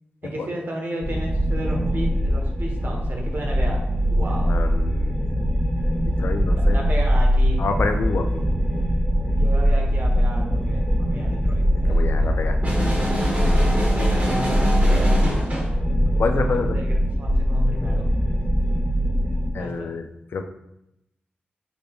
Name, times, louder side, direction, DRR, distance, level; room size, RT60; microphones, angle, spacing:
voice 1, 0.2-3.8 4.1-4.6 6.5-7.6 9.4-12.3 13.6-15.1 16.0-16.2 16.5-18.1 19.6-19.9, right 1 dB, 60° right, 1 dB, 1.2 m, -34 dB
sound 1, 1.0-19.5, equal, ahead, 1.7 m, -21 dB
voice 2, 4.5-5.3 6.0-6.9 7.6-8.4 11.9-12.6 16.2-16.8 19.5-20.1 20.3-20.4, left 4 dB, 75° left, 6 dB, 0.5 m, -27 dB
sound 2, 12.6-15.8, equal, 40° right, 1.3 m, -26 dB
6.1 x 3.4 x 2.4 m, 0.83 s
cardioid pair, 45°, 4 cm